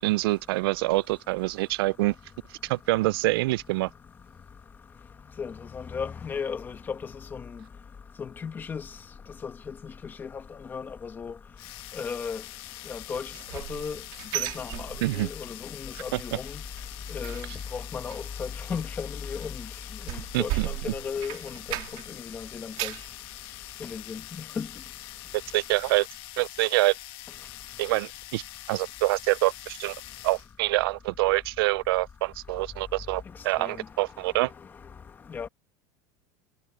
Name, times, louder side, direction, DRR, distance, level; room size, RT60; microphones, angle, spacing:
voice 1, 0.0-2.1 2.6-3.9 15.0-15.3 16.1-16.2 20.3-20.7 25.5-26.1 26.4-26.9 27.8-28.4 28.7-30.0 30.2-34.5, right 20 dB, 85° right, 0.4 m, -26 dB
voice 2, 5.4-7.4 8.2-8.9 9.4-9.9 10.2-10.4 10.7-11.3 11.9-12.4 12.9-14.0 14.3-16.6 17.1-17.5 17.7-19.7 20.1-21.6 22.2-22.9 23.8-24.7 33.6-33.8 35.3-35.5, left 6 dB, 15° left, 1.3 m, -35 dB
sound 1, 11.6-30.5, left 17 dB, 45° left, 1.5 m, -44 dB
sound 2, 13.1-15.5 15.8-16.1 16.4-22.2 22.5-23.1 23.6-23.7 24.2-24.3, right 20 dB, 50° right, 2.5 m, -36 dB
supercardioid pair, 170°, 12 cm